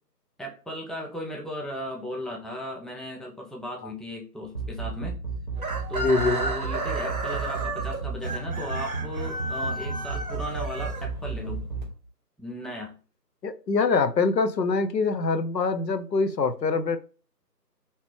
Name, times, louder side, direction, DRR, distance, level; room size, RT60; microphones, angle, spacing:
voice 1, 0.4-5.2 5.9-11.6 12.4-12.9, equal, ahead, -1 dB, 0.4 m, -36 dB
sound 1, 4.4-11.8, right 5 dB, 30° left, 0.9 m, -31 dB
Chicken rooster, 5.6-11.5, right 2 dB, 60° right, 0.7 m, -33 dB
voice 2, 6.0-6.4 13.4-17.0, left 4 dB, 85° left, 10 dB, 0.6 m, -24 dB
3.0 x 2.8 x 3.3 m, 0.37 s
figure-of-eight pair, 165°, 49 cm